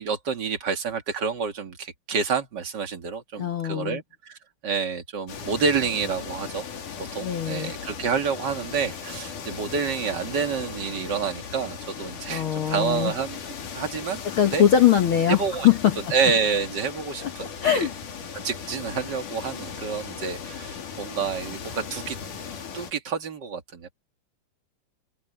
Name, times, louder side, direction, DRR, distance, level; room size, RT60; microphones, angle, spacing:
voice 1, 0.0-4.4 4.6-6.6 7.1-13.4 13.7-14.2 14.5-14.6 15.3-15.7 16.1-17.5 17.7-17.9 18.3-22.2 22.7-23.9, right 5 dB, 40° right, 2.1 m, -28 dB
voice 2, 3.4-4.0 7.2-7.7 12.3-13.1 14.4-15.4 15.6-15.9 17.2-17.9, left 10 dB, 55° left, 1.6 m, -21 dB
sound 1, 5.3-22.9, left 6 dB, 80° left, 4.4 m, -37 dB
open air
omnidirectional pair, 3.6 m